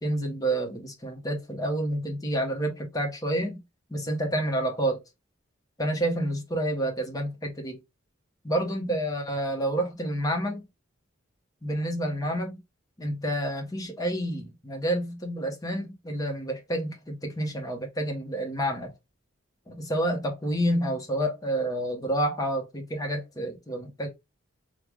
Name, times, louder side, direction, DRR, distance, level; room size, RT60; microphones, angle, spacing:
voice 1, 0.0-3.6 3.9-5.0 5.8-7.8 8.4-10.6 11.6-12.6 13.0-18.9 19.7-24.1, right 1 dB, 20° left, 0.7 m, -29 dB
3.1 x 2.0 x 3.3 m
head